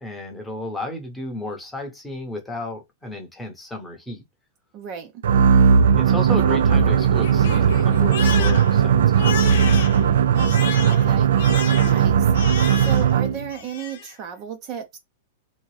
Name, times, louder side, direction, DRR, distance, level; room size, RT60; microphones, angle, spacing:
voice 1, 0.0-4.2 5.9-9.8, left 2 dB, 5° left, 0.8 m, -33 dB
voice 2, 4.7-5.2 10.8-11.3 11.8-12.3 12.7-15.0, right 8 dB, 30° right, 0.6 m, -34 dB
sound 1, 5.2-13.5, right 7 dB, 80° right, 0.4 m, -17 dB
Crying sobbing, 6.4-13.2 13.5-14.1, left 8 dB, 70° left, 0.8 m, -33 dB
3.5 x 2.8 x 3.2 m
supercardioid pair, 170°, 0 cm